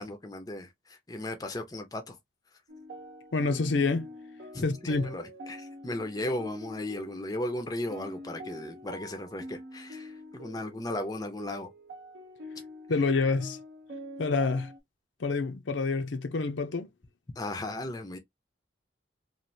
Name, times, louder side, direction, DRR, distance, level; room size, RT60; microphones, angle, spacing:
voice 1, 0.0-2.2 4.5-11.7 17.4-18.2, left 1 dB, 20° left, 0.5 m, -36 dB
sound 1, 2.7-14.8, equal, 60° right, 0.7 m, -45 dB
voice 2, 3.3-4.1 4.6-5.1 12.9-13.6 14.2-14.7 15.2-16.9, left 4 dB, 80° left, 0.6 m, -27 dB
3.0 x 2.4 x 2.6 m
head